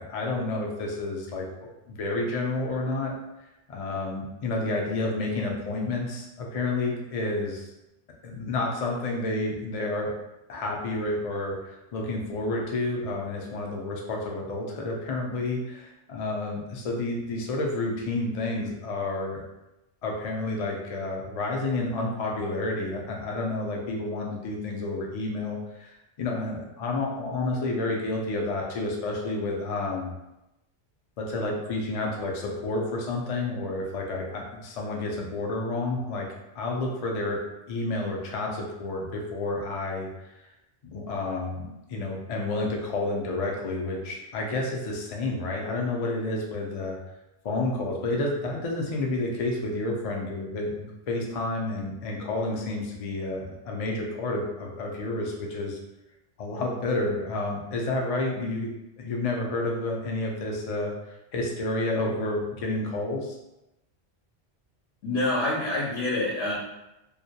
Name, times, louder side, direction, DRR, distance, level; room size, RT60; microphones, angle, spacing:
voice 1, 0.0-3.1 3.7-7.7 8.2-10.1 10.5-19.5 20.0-30.1 31.2-36.3 36.6-37.4 37.7-40.1 40.9-47.0 47.4-55.8 56.4-58.7 59.0-63.4, left 2 dB, 55° left, -1 dB, 0.4 m, -30 dB
voice 2, 65.0-66.5, left 2 dB, 75° left, -5 dB, 0.8 m, -26 dB
2.2 x 2.1 x 2.7 m, 0.93 s
omnidirectional pair, 1.1 m